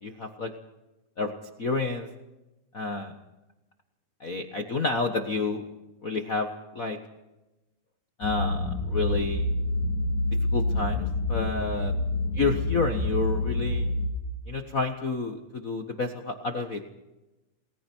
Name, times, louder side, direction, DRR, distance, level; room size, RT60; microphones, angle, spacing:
voice 1, 0.0-0.5 1.2-1.3 1.6-2.1 2.7-3.1 4.2-5.6 6.0-6.5 6.7-7.0 8.2-9.5 10.5-11.9 12.4-13.9 14.5-16.8, left 3 dB, 90° left, 4 dB, 0.7 m, -29 dB
sound 1, 8.2-14.1, left 2 dB, 65° left, 3.5 m, -27 dB
28.5 x 20.5 x 4.6 m, 1.0 s
omnidirectional pair, 3.8 m